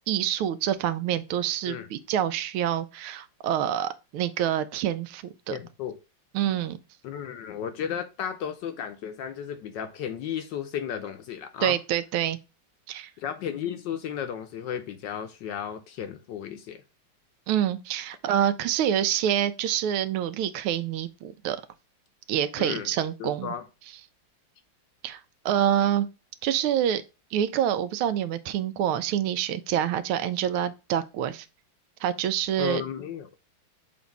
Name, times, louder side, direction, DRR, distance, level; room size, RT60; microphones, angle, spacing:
voice 1, 0.1-5.6 6.3-6.8 11.6-12.4 12.9-13.1 17.5-21.6 22.3-23.5 25.0-25.2 25.4-26.1 26.4-27.0 27.3-31.5 32.0-32.8, right 10 dB, 90° right, 1.5 m, -26 dB
voice 2, 5.5-6.0 7.0-11.8 13.2-16.8 22.6-22.9 23.2-23.6 32.6-33.3, left 9 dB, 70° left, 1.2 m, -34 dB
7.1 x 2.6 x 5.2 m
omnidirectional pair, 2.3 m